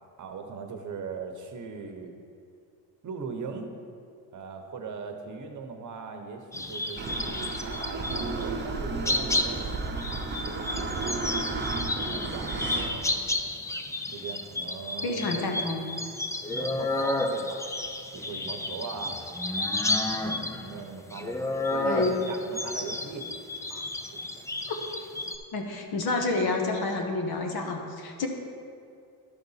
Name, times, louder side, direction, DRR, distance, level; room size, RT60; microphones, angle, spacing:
voice 1, 0.2-2.1 3.0-3.7 4.3-11.2 12.0-13.1 14.1-15.6 16.5-17.7 18.1-19.2 20.2-21.4 21.7-23.3 23.7-24.5, right 5 dB, 45° right, 4 dB, 1.0 m, -40 dB
sound 1, 6.5-8.6 9.0-25.4, left 2 dB, 10° left, 0.3 m, -31 dB
sound 2, 7.0-12.9, right 3 dB, 25° right, 0.9 m, -33 dB
voice 2, 15.0-15.8 21.8-22.1 24.7-24.8 25.5-28.3, left 3 dB, 55° left, 3 dB, 1.3 m, -29 dB
12.0 x 4.0 x 5.6 m, 2.4 s
cardioid pair, 105°, 43 cm